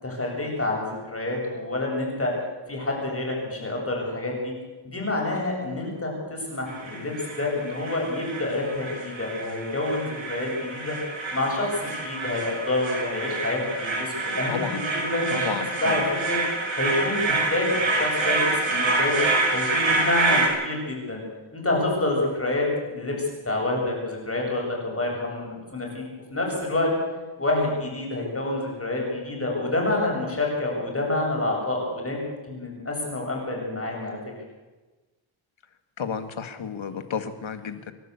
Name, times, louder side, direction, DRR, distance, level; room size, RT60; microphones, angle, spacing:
voice 1, 0.0-2.3 2.7-4.5 4.8-11.0 11.3-16.4 16.8-19.2 19.5-21.2 21.5-26.0 26.3-34.2, left 2 dB, 25° left, -1 dB, 7.6 m, -28 dB
sound 1, 6.7-20.5, right 2 dB, 65° right, 6.5 m, -27 dB
voice 2, 14.5-14.8 15.3-16.1 36.0-37.9, left 6 dB, 65° left, 9 dB, 2.0 m, -31 dB
27.5 x 12.0 x 8.2 m, 1.2 s
wide cardioid pair, 100°, 50 cm